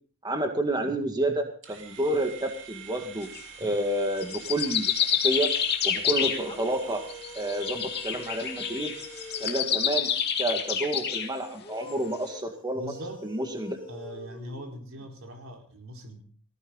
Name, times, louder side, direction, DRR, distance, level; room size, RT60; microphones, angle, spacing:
voice 1, 0.2-3.3 3.6-5.5 5.8-7.0 7.4-8.9 9.4-10.1 10.4-12.9 13.2-13.8, right 1 dB, 20° right, 4 dB, 2.0 m, -29 dB
sound 1, 1.6-9.8, right 7 dB, 65° right, 3.2 m, -47 dB
sound 2, 3.2-3.4 4.2-6.7 7.1-11.3, left 8 dB, 55° left, 2.4 m, -28 dB
sound 3, 6.4-10.2 11.5-15.1, equal, 25° left, 2.4 m, -45 dB
voice 2, 12.7-13.3 13.9-16.2, equal, 80° right, 2 dB, 4.5 m, -41 dB
19.5 x 15.5 x 4.1 m, 0.42 s
head